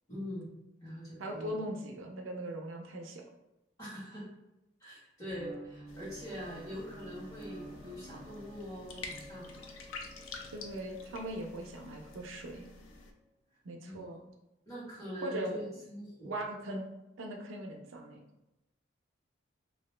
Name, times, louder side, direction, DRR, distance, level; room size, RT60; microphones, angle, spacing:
voice 1, 0.1-0.5 0.8-1.5 3.8-4.3 4.8-9.6 13.8-14.0 14.6-16.3, equal, 15° left, -8 dB, 1.4 m, -43 dB
voice 2, 1.2-3.2 10.5-12.7 13.6-14.2 15.2-15.6 16.2-16.9 17.2-18.2, right 1 dB, 80° right, 3 dB, 0.5 m, -39 dB
sound 1, 5.3-12.6, right 1 dB, 20° right, 0.6 m, -51 dB
sound 2, 5.9-13.1, left 3 dB, 80° left, 0.5 m, -49 dB
2.8 x 2.7 x 3.2 m, 0.94 s
head